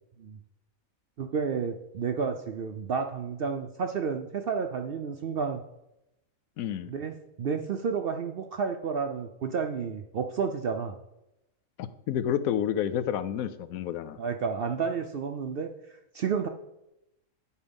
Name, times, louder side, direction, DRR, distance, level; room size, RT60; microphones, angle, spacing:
voice 1, 1.2-5.6 6.9-11.0 14.2-16.5, right 6 dB, 60° right, 6 dB, 0.6 m, -31 dB
voice 2, 6.6-6.9 11.8-14.2, left 10 dB, 85° left, 13 dB, 1.0 m, -30 dB
9.7 x 4.5 x 5.2 m, 0.88 s
omnidirectional pair, 1.5 m